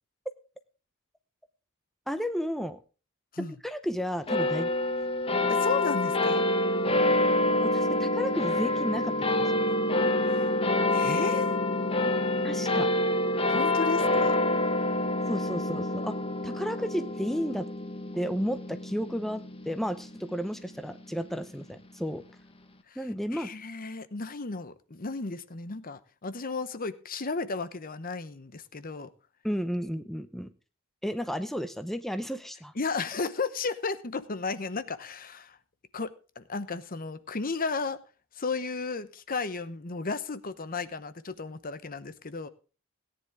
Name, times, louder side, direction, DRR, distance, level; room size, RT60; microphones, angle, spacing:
voice 1, 2.1-2.8 3.4-4.8 7.6-9.5 12.4-12.9 15.3-16.2 16.4-17.7 18.1-22.2 23.0-23.5 29.4-30.5 31.0-32.7, equal, ahead, 9 dB, 0.7 m, -32 dB
sound 1, 4.3-21.0, left 1 dB, 25° left, 1.3 m, -27 dB
voice 2, 5.5-6.4 10.2-10.5 10.9-11.5 13.5-14.4 22.9-29.1 32.8-35.6 35.9-38.0 38.4-42.5, left 4 dB, 40° left, 13 dB, 0.9 m, -34 dB
17.5 x 10.0 x 3.6 m, 0.35 s
head